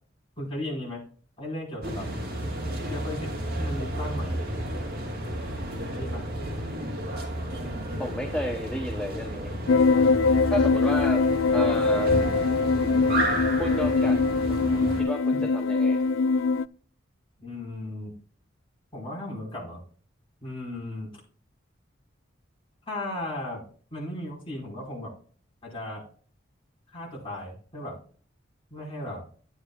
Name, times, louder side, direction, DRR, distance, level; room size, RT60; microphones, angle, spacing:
voice 1, 0.4-1.0 1.4-2.1 2.8-4.4 5.9-6.2 13.0-13.2 15.3-15.4 17.4-18.1 18.9-19.8 20.4-21.1 22.9-23.6 23.9-25.1 25.6-26.0 26.9-28.0 28.7-29.3, left 1 dB, 25° left, -4 dB, 4.8 m, -36 dB
sound 1, 1.8-15.0, right 1 dB, 50° right, 2.6 m, -32 dB
voice 2, 8.0-9.5 10.5-11.2 11.5-12.1 13.6-14.2 14.5-16.0, left 1 dB, 5° left, 2 dB, 0.8 m, -32 dB
sound 2, 9.7-16.6, left 4 dB, 80° left, 0.3 m, -22 dB
11.5 x 9.6 x 2.4 m, 0.44 s
head